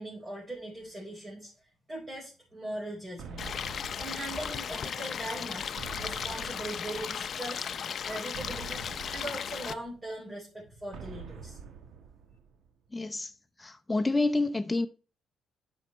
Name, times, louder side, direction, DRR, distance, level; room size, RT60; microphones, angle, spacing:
voice 1, 0.0-3.5 3.9-5.7 6.0-7.6 8.0-8.8 9.1-11.6, right 1 dB, 25° right, 4.6 m, -40 dB
sound 1, 3.2-5.0 5.8-7.5 8.3-10.1 10.9-12.7, right 6 dB, 75° right, 1.3 m, -46 dB
Stream, 3.4-9.7, left 7 dB, 55° left, 0.5 m, -36 dB
voice 2, 12.9-13.3 13.6-14.9, left 2 dB, 15° left, 0.7 m, -28 dB
9.6 x 6.5 x 3.1 m
cardioid pair, 90°, 0 cm